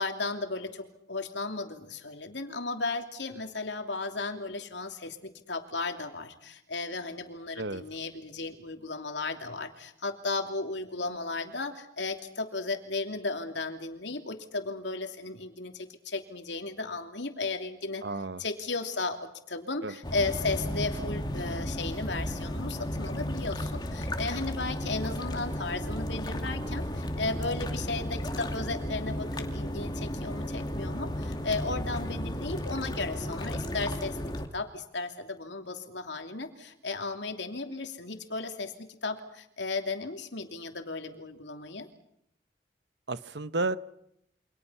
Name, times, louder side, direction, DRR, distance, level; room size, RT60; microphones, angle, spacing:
voice 1, 0.0-18.0 18.4-41.9, left 3 dB, 80° left, 6 dB, 2.9 m, -35 dB
voice 2, 18.0-18.4 19.8-19.9 43.1-43.8, right 2 dB, 70° right, 14 dB, 1.1 m, -32 dB
sound 1, 20.0-34.5, equal, 25° left, 2.5 m, -34 dB
29.0 x 25.5 x 5.8 m, 0.76 s
head